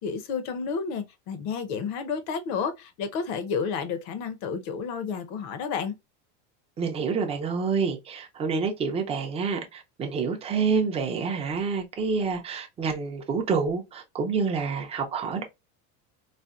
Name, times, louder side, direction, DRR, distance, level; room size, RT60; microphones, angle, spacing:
voice 1, 0.0-6.0, left 6 dB, 50° left, 0.8 m, -31 dB
voice 2, 6.8-15.4, right 5 dB, 15° right, 0.5 m, -28 dB
4.1 x 2.1 x 2.3 m
cardioid pair, 155°, 37 cm